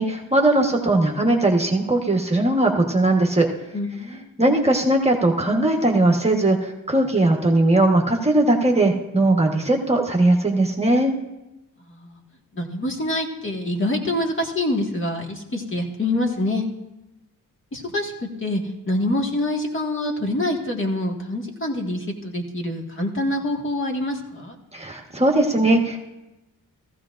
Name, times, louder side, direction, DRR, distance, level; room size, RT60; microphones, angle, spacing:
voice 1, 0.0-3.5 4.4-11.1 24.7-26.0, right 2 dB, 20° right, 1 dB, 1.2 m, -19 dB
voice 2, 3.7-4.3 11.9-12.2 12.5-16.6 17.7-18.1 18.4-18.6 18.9-24.6, left 1 dB, 35° left, 1 dB, 1.7 m, -25 dB
15.5 x 15.0 x 2.5 m, 0.99 s
cardioid pair, 110°, 36 cm